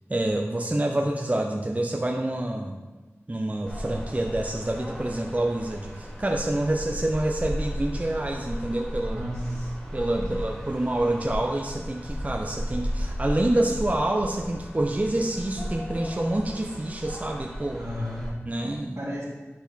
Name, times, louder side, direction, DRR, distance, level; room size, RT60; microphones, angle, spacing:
voice 1, 0.1-2.8 3.3-9.2 9.9-17.8 18.5-19.0, right 1 dB, 30° right, 2 dB, 0.5 m, -27 dB
sound 1, 3.6-18.3, equal, 10° left, 1.3 m, -35 dB
voice 2, 9.1-9.7 10.2-10.3 17.7-18.3 19.0-19.3, equal, 75° right, -6 dB, 2.0 m, -33 dB
8.2 x 4.1 x 4.0 m, 1.2 s
wide cardioid pair, 50°, 5 cm